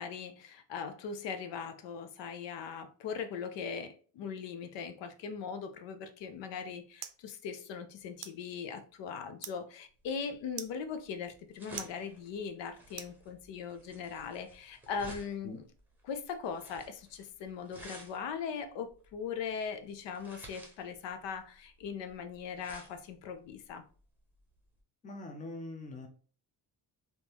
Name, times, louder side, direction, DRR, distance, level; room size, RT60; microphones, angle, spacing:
voice 1, 0.0-15.7 16.0-23.8, left 6 dB, 80° left, 0.6 m, -40 dB
sound 1, 6.2-13.8, right 11 dB, 60° right, 0.5 m, -51 dB
sound 2, 10.0-24.8, right 1 dB, 5° right, 0.9 m, -54 dB
voice 2, 25.0-26.1, left 2 dB, 20° left, 0.5 m, -43 dB
3.6 x 2.7 x 2.9 m
cardioid pair, 140°, 43 cm